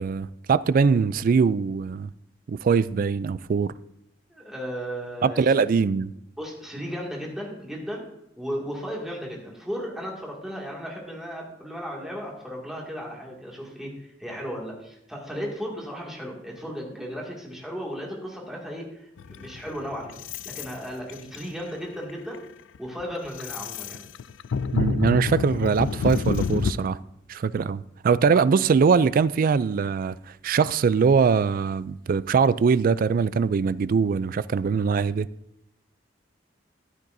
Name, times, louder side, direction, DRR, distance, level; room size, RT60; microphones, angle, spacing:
voice 1, 0.0-2.1 2.5-3.7 5.2-6.1 24.7-27.0 27.3-30.2 30.4-35.3, right 5 dB, 50° right, 0.3 m, -22 dB
voice 2, 4.3-5.7 6.4-8.0 8.4-20.2 20.4-22.4 22.8-24.0, equal, 5° right, 2.2 m, -35 dB
sound 1, 19.2-20.8 21.1-21.6 22.1-22.4 22.7-26.7, left 5 dB, 85° left, 0.4 m, -28 dB
13.5 x 10.0 x 2.6 m
head